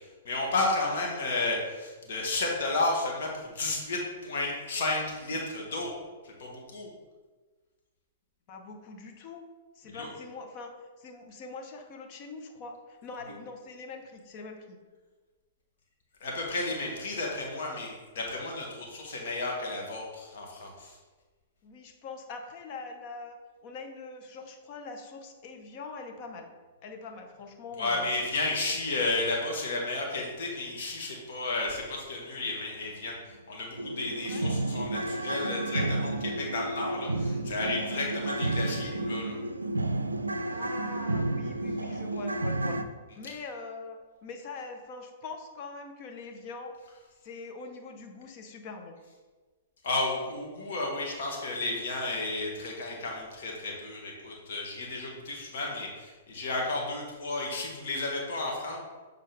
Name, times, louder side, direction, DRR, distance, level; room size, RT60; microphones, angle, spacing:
voice 1, 0.2-5.9 6.2-6.9 9.9-10.1 16.2-21.0 27.8-33.2 33.5-39.4 49.8-58.8, left 2 dB, 60° left, -1 dB, 1.3 m, -32 dB
voice 2, 8.5-9.5 9.8-14.8 21.6-23.4 23.6-26.5 26.8-28.1 34.1-34.5 40.5-42.8 43.2-46.8 47.2-49.0, left 4 dB, 40° left, 4 dB, 0.9 m, -43 dB
sound 1, 32.8-32.9 33.3-33.4 33.8-42.8, right 2 dB, 85° right, 0.4 m, -31 dB
7.5 x 3.7 x 3.4 m, 1.3 s
figure-of-eight pair, 110°, 0 cm